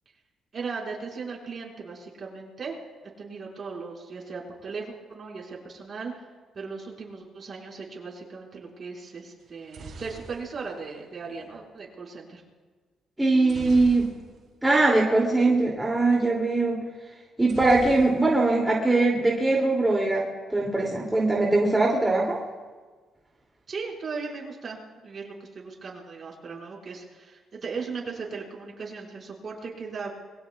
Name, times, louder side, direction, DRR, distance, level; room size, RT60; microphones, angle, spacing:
voice 1, 0.5-2.8 3.2-6.2 6.5-12.4 23.7-30.1, right 4 dB, 45° right, -2 dB, 5.4 m, -37 dB
sound 1, 9.4-11.5 13.4-14.6 14.9-15.0 15.3-15.5 17.4-18.6 18.9-19.5, right 4 dB, 60° right, 3.9 m, -43 dB
voice 2, 13.2-14.1 14.6-16.8 17.4-22.4, right 2 dB, 10° right, -3 dB, 2.8 m, -22 dB
26.5 x 22.0 x 2.4 m, 1.4 s
cardioid pair, 90°, 0 cm